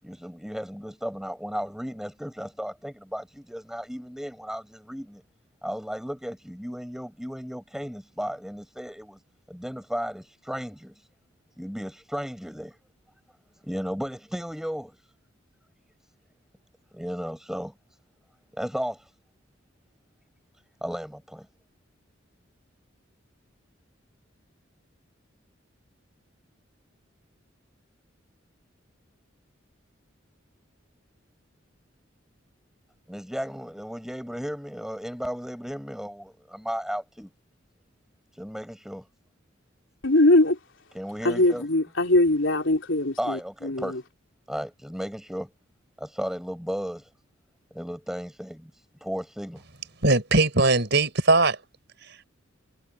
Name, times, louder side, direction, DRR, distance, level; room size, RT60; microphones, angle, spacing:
voice 1, 0.0-5.2 5.6-9.2 9.5-11.1 11.6-12.8 13.6-15.0 16.9-17.7 18.5-19.1 20.8-21.5 33.1-37.3 38.3-39.1 40.9-41.7 43.2-44.0 44.5-45.5 46.0-47.1 47.7-49.6, equal, ahead, 6.8 m, -34 dB
voice 2, 40.0-40.6 41.2-43.4 43.6-44.0, left 2 dB, 75° left, 3.6 m, -21 dB
voice 3, 50.0-51.6, right 2 dB, 60° right, 5.9 m, -20 dB
head